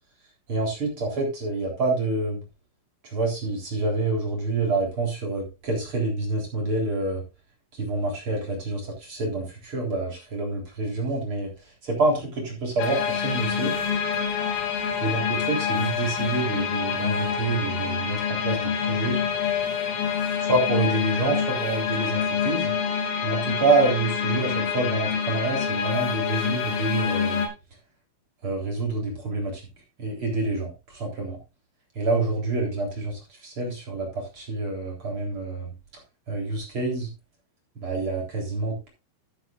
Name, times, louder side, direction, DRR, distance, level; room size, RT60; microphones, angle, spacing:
voice 1, 0.5-2.4 3.0-7.2 7.7-11.5 11.8-13.7 15.0-15.2 15.5-19.2 20.5-22.7 23.2-27.4 28.4-29.7 30.0-31.4 31.9-35.7 36.3-37.1 37.8-38.9, right 3 dB, 30° right, -1 dB, 3.9 m, -27 dB
sound 1, 12.8-27.5, left 7 dB, 80° left, 4.8 m, -26 dB
14.5 x 9.0 x 2.5 m, 0.27 s
omnidirectional pair, 5.8 m